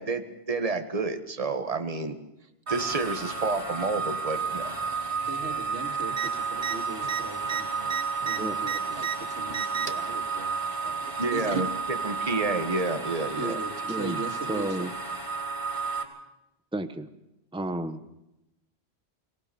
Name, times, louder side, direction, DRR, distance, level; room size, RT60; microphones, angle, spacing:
voice 1, 0.0-2.2 2.7-4.7 11.2-13.6, right 3 dB, 35° right, 7 dB, 1.6 m, -29 dB
sound 1, 2.7-16.0, right 5 dB, 70° right, 3.4 m, -32 dB
voice 2, 5.2-11.7 13.3-14.9, right 2 dB, 90° right, 4 dB, 2.7 m, -39 dB
sound 2, 6.1-6.3 6.6-6.8 7.0-9.2 9.5-10.1 11.0-11.7 12.8-12.9, right 8 dB, 50° right, 1.4 m, -33 dB
voice 3, 13.9-14.2 14.5-14.9 16.7-17.1 17.5-18.0, right 1 dB, 5° right, 9 dB, 1.0 m, -31 dB
24.5 x 19.0 x 7.0 m, 0.89 s
omnidirectional pair, 1.1 m